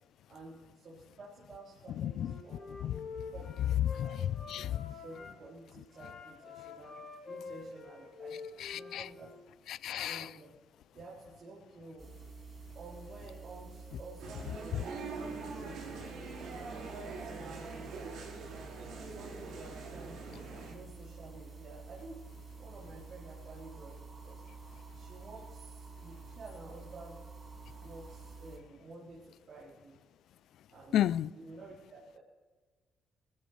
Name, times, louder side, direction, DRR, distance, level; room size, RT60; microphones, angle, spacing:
voice 1, 0.3-2.6 3.3-4.1 4.7-8.4 8.7-9.3 10.1-10.5 10.9-12.1 12.7-15.3 15.6-18.3 19.1-22.2 22.6-24.4 24.9-27.2 27.8-30.0 30.7-30.9 31.4-32.2, right 2 dB, 55° right, 3.9 m, -51 dB
voice 2, 2.0-2.3 2.8-3.0 3.8-4.9 8.6-9.1 9.7-10.3 30.9-31.3, left 11 dB, 75° left, 0.4 m, -32 dB
Wind instrument woodwind instrument, 2.0-5.3 5.9-9.5, left 4 dB, 50° left, 5.6 m, -47 dB
sound 1, 12.0-28.6, right 4 dB, 35° right, 5.7 m, -49 dB
sound 2, 14.2-20.7, right 4 dB, 85° right, 4.9 m, -44 dB
19.5 x 14.5 x 3.3 m
cardioid pair, 90°, 0 cm